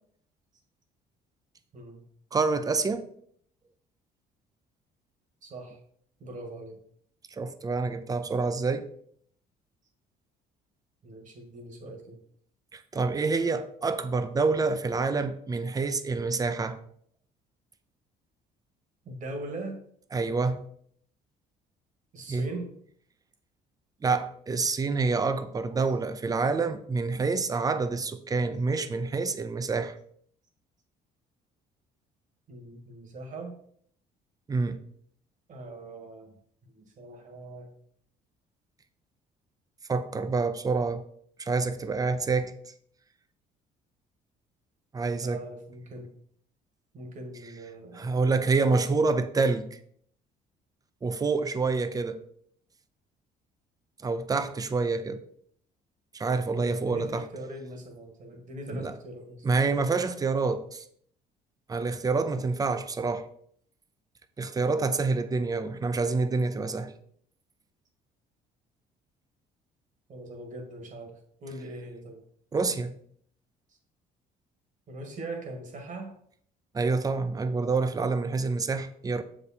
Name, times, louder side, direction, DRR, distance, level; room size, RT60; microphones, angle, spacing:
voice 1, 1.7-2.0 5.4-5.8 6.2-6.8 11.0-12.2 19.1-19.8 22.1-22.8 32.5-33.6 35.5-36.3 36.6-37.7 45.2-46.1 46.9-48.2 56.6-59.5 70.1-72.2 74.9-76.1, right 1 dB, 50° right, 1.9 m, -41 dB
voice 2, 2.3-3.1 7.3-8.9 12.7-16.8 20.1-20.6 22.3-22.5 24.0-29.9 34.5-34.8 39.9-41.0 41.4-42.5 44.9-45.4 47.9-49.8 51.0-52.2 54.0-55.2 56.1-57.3 58.7-59.0 59.4-60.8 61.7-63.3 64.4-66.9 72.5-72.9 76.7-79.2, right 4 dB, 20° right, 0.6 m, -27 dB
6.8 x 5.1 x 4.3 m
cardioid pair, 110°, 17 cm